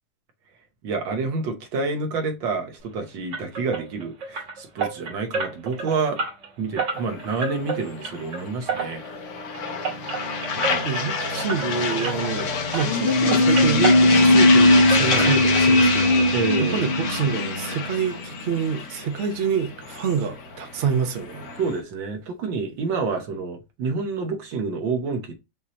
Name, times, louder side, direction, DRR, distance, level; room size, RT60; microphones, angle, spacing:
voice 1, 0.8-6.2 6.6-9.0 10.6-10.9 15.1-15.3 16.3-16.9 21.6-25.3, right 4 dB, 70° right, 1.7 m, -28 dB
sound 1, 3.3-12.5 12.7-14.5 14.8-15.9 16.1-16.3 16.7-16.8 17.1-17.2, right 4 dB, 90° right, 2.8 m, -31 dB
sound 2, 7.0-21.8, left 4 dB, 55° left, 0.9 m, -28 dB
voice 2, 10.8-16.3 16.6-21.5, right 6 dB, 55° right, 0.7 m, -27 dB
sound 3, 12.8-18.1 18.4-18.5, left 1 dB, 85° left, 2.0 m, -18 dB
5.9 x 2.7 x 3.1 m
omnidirectional pair, 2.1 m